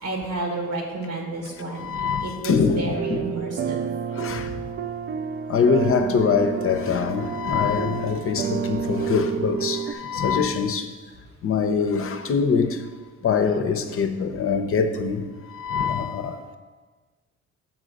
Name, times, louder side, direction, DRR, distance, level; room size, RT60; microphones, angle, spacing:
voice 1, 0.0-1.9 2.2-3.9 4.3-4.5, right 2 dB, 90° right, 1.6 m, -31 dB
voice 2, 1.8-3.2 4.2-4.4 5.5-10.8 11.4-12.8 13.2-15.2 15.6-16.6, left 5 dB, 50° left, 0.6 m, -23 dB
sound 1, 2.9-9.9, right 7 dB, 35° right, 0.4 m, -30 dB
7.4 x 3.9 x 6.3 m
cardioid pair, 90°, 30 cm